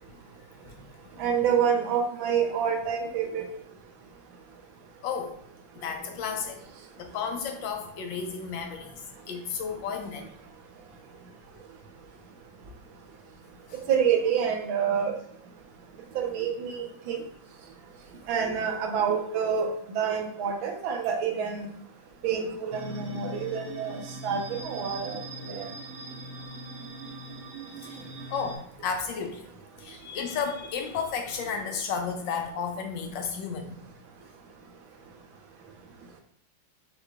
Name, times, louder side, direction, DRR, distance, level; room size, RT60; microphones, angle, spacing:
voice 1, 1.2-3.5 13.9-15.1 16.1-17.2 18.3-21.7 22.2-25.7, right 7 dB, 80° right, 3 dB, 1.5 m, -27 dB
voice 2, 5.0-5.4 5.8-6.6 7.0-9.0 9.3-10.3 13.7-13.8 27.8-28.0 28.3-29.5 29.8-33.8, left 6 dB, 75° left, 4 dB, 1.2 m, -33 dB
sound 1, 22.7-28.6, right 1 dB, 50° right, 1.3 m, -41 dB
6.1 x 3.1 x 2.3 m, 0.67 s
omnidirectional pair, 2.2 m